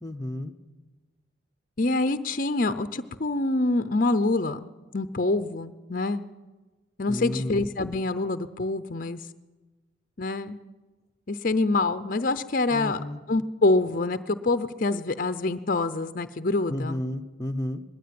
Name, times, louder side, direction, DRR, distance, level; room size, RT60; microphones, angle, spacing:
voice 1, 0.0-0.5 7.1-7.7 12.7-13.2 16.7-17.8, left 1 dB, 15° left, 3 dB, 0.9 m, -32 dB
voice 2, 1.8-4.7 4.9-6.2 7.0-9.2 10.2-10.6 11.3-13.0 13.3-17.0, left 2 dB, 45° left, 11 dB, 0.6 m, -26 dB
20.5 x 15.5 x 9.4 m, 1.2 s
head